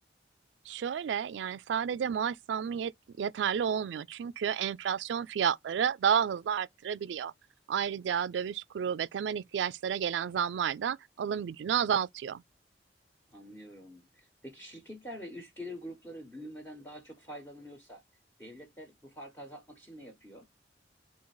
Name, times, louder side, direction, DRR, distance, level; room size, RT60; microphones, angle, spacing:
voice 1, 0.7-2.9 3.2-7.3 7.7-12.4, right 8 dB, 85° right, 0.3 m, -31 dB
voice 2, 13.3-18.0 18.4-20.4, equal, 15° left, 1.1 m, -46 dB
3.9 x 2.8 x 4.7 m
head